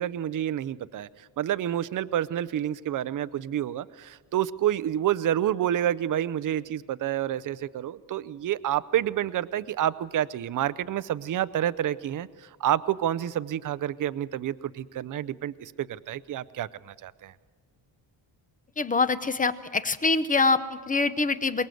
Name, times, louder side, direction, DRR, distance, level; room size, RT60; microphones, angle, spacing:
voice 1, 0.0-17.3, right 11 dB, 45° right, 16 dB, 0.6 m, -29 dB
voice 2, 18.8-21.7, left 3 dB, 20° left, 13 dB, 0.7 m, -25 dB
23.5 x 21.0 x 7.8 m, 1.5 s
cardioid pair, 155°, 45 cm